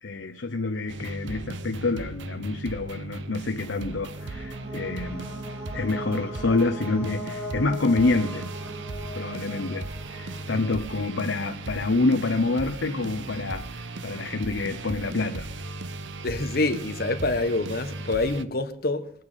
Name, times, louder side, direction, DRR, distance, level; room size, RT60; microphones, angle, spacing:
voice 1, 0.0-5.3 5.7-8.5 9.1-15.5, left 3 dB, 80° left, 0.9 m, -27 dB
sound 1, 0.9-18.4, right 2 dB, 75° right, 0.9 m, -37 dB
sound 2, 3.5-11.2, equal, 15° right, 3.7 m, -39 dB
voice 2, 16.2-19.1, left 2 dB, 50° left, 1.3 m, -26 dB
22.5 x 9.4 x 5.8 m
head